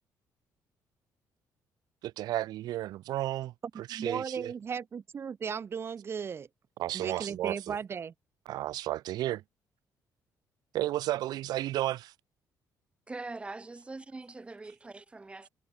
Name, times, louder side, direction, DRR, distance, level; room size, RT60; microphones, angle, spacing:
voice 1, 2.0-4.5 6.8-7.8 8.5-9.4 10.7-12.1, right 14 dB, 80° right, 2.5 m, -33 dB
voice 2, 3.9-6.5 6.9-8.1, right 6 dB, 35° right, 2.4 m, -36 dB
voice 3, 13.1-15.5, right 3 dB, 15° right, 6.2 m, -43 dB
cardioid pair, 130°, 7 cm